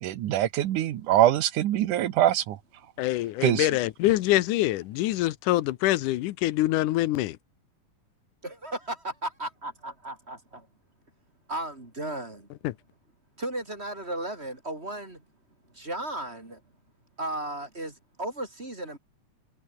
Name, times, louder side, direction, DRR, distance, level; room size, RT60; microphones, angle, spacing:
voice 1, 0.0-2.6 3.4-3.7, right 12 dB, 80° right, 2.8 m, -23 dB
voice 2, 3.0-7.4 12.6-12.7, left 16 dB, 90° left, 2.4 m, -25 dB
voice 3, 8.4-10.7 11.5-12.5 13.4-15.2 15.7-16.6 17.2-19.0, right 1 dB, 20° right, 4.0 m, -35 dB
omnidirectional pair, 3.5 m